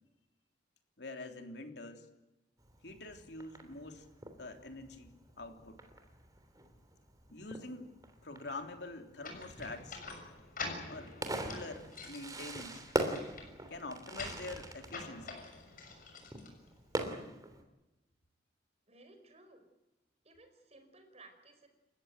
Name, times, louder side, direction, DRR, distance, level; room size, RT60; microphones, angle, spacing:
voice 1, 1.0-2.1 2.8-4.1 4.4-5.8 7.3-7.9 8.2-10.0 10.8-12.9 13.7-15.4, left 2 dB, 65° left, 5 dB, 3.3 m, -46 dB
Fireworks, 2.6-17.6, right 1 dB, 20° right, 3.1 m, -43 dB
sound 1, 9.2-17.1, left 3 dB, 50° left, 6.7 m, -47 dB
voice 2, 18.9-19.7 20.2-21.7, right 2 dB, 35° right, 7 dB, 4.9 m, -58 dB
30.0 x 15.0 x 9.2 m, 0.99 s
head